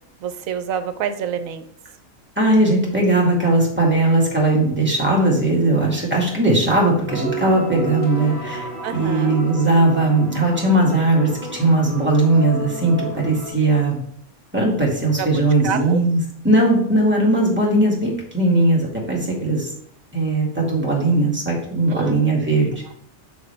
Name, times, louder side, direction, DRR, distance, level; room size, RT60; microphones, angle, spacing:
voice 1, 0.2-1.7 8.8-9.4 15.2-16.0 21.9-22.2, right 7 dB, 75° right, 10 dB, 1.1 m, -27 dB
voice 2, 2.4-8.6 8.9-14.0 14.5-16.2 16.4-19.7 20.1-22.7, right 2 dB, 10° right, -4 dB, 2.1 m, -18 dB
Dinner at ten, 7.1-13.5, right 2 dB, 10° left, 2.6 m, -31 dB
7.2 x 6.2 x 3.4 m, 0.65 s
omnidirectional pair, 1.5 m